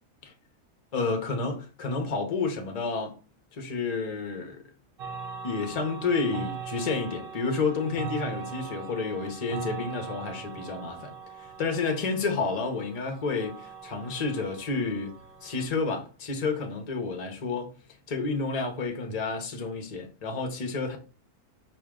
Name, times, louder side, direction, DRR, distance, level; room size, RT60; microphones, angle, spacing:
voice 1, 0.9-3.2 3.5-4.6 5.4-11.1 11.4-15.1 15.4-17.7 18.1-21.0, left 4 dB, 35° left, 0.8 m, -30 dB
sound 1, 5.0-15.7, right 5 dB, 50° right, 0.8 m, -41 dB
4.9 x 2.6 x 3.7 m
omnidirectional pair, 1.6 m